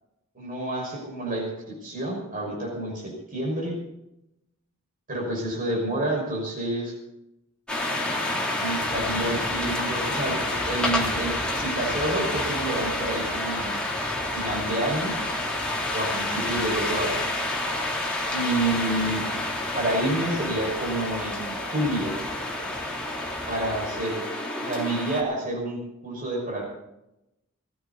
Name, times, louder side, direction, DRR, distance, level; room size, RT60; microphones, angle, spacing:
voice 1, 0.3-3.8 5.1-6.9 8.6-14.0 14.3-15.1 15.9-17.3 18.3-19.2 19.7-22.1 23.5-24.3 24.6-26.6, right 1 dB, 40° right, -2 dB, 5.7 m, -29 dB
sound 1, 7.7-25.2, left 1 dB, 5° left, 3.4 m, -29 dB
20.0 x 15.5 x 4.1 m, 0.86 s
head